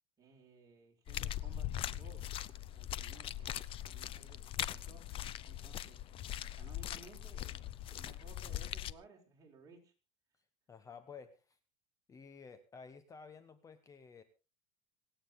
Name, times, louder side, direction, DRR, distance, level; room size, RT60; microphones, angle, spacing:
voice 1, 0.2-2.2 2.6-5.0 5.4-6.0 6.5-7.6 7.9-9.9, right 4 dB, 25° right, 0 dB, 5.1 m, -59 dB
sound 1, 1.1-8.9, left 12 dB, 35° left, 0.6 m, -41 dB
voice 2, 10.7-11.6 12.1-14.2, left 5 dB, 20° left, 11 dB, 1.1 m, -53 dB
26.0 x 9.1 x 3.7 m, 0.33 s
supercardioid pair, 125°, 15 cm